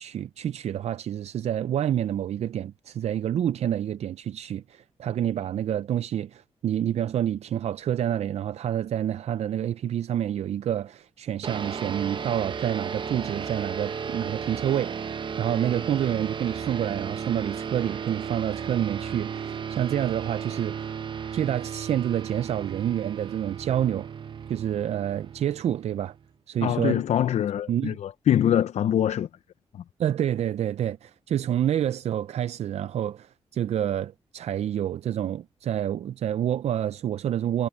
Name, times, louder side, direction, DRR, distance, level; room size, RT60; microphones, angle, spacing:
voice 1, 0.0-20.9 21.3-24.1 24.5-26.1 26.5-27.0 27.7-28.0 30.0-37.7, right 10 dB, 75° right, 0.4 m, -28 dB
sound 1, 11.4-26.2, right 7 dB, 45° right, 0.8 m, -34 dB
voice 2, 26.6-29.3, left 10 dB, 85° left, 0.5 m, -24 dB
wide cardioid pair, 125°, 11 cm